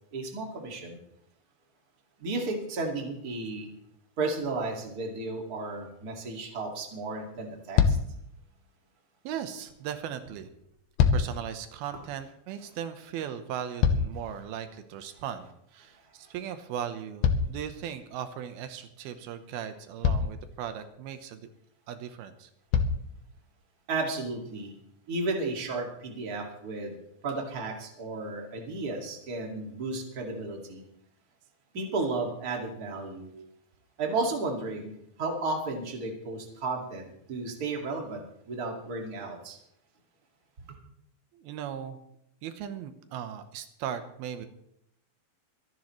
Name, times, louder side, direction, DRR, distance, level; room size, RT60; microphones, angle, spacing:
voice 1, 0.1-1.0 2.2-3.7 4.2-8.0 23.9-24.7 25.1-27.0 27.2-30.8 31.7-33.3 34.0-39.6, right 3 dB, 30° right, 1 dB, 2.2 m, -33 dB
sound 1, 7.3-7.5 7.8-8.3 10.6-11.5 13.3-14.4 17.2-18.2 19.4-19.5 20.0-20.5 21.9-22.0 22.7-23.1 23.9-24.0, left 6 dB, 80° left, 2.7 m, -26 dB
voice 2, 9.2-10.5 11.1-21.5 21.9-22.5 41.3-42.0 42.4-44.5, right 9 dB, 85° right, 9 dB, 3.0 m, -38 dB
25.0 x 11.0 x 3.2 m, 0.75 s
omnidirectional pair, 4.3 m